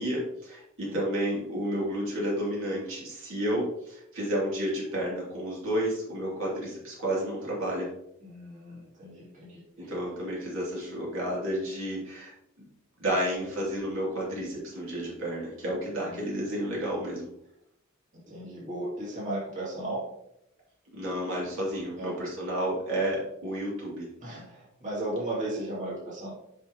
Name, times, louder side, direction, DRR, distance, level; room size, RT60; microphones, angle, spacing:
voice 1, 0.0-7.9 9.8-12.7 13.0-17.3 20.9-24.1, equal, 70° right, -5 dB, 2.7 m, -31 dB
voice 2, 8.2-9.9 16.1-16.5 18.3-20.1 22.0-22.1 24.2-26.3, right 1 dB, 35° right, -6 dB, 2.4 m, -36 dB
7.6 x 5.5 x 2.9 m, 0.77 s
head